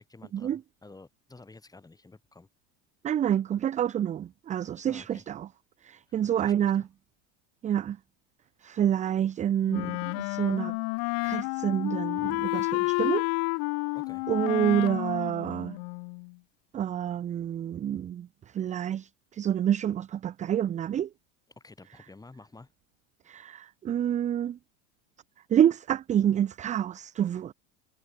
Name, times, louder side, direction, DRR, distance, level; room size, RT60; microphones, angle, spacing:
voice 1, 0.0-2.5 4.8-5.2 6.1-6.9 13.9-14.3 21.5-22.7, left 3 dB, 10° left, 6.7 m, -51 dB
voice 2, 3.0-5.5 5.8-6.8 7.6-8.0 8.6-10.8 11.2-13.3 14.3-15.8 16.7-18.3 18.5-21.1 23.3-24.6 25.5-27.5, right 10 dB, 20° right, 0.5 m, -28 dB
Wind instrument woodwind instrument, 9.7-16.3, left 40 dB or more, 50° left, 0.6 m, -30 dB
supercardioid pair, 130°, 39 cm